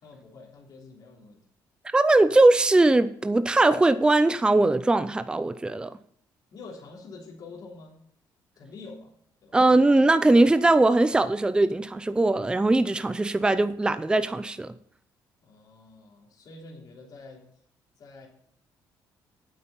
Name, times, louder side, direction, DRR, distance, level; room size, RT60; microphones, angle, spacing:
voice 1, 0.0-1.4 6.5-8.0 8.5-9.1 9.4-9.6 15.4-17.4 18.0-18.3, left 3 dB, 55° left, 3.3 m, -46 dB
voice 2, 1.9-5.9 9.5-14.7, right 2 dB, 10° right, 0.5 m, -20 dB
8.9 x 8.3 x 5.5 m
cardioid pair, 105°, 8 cm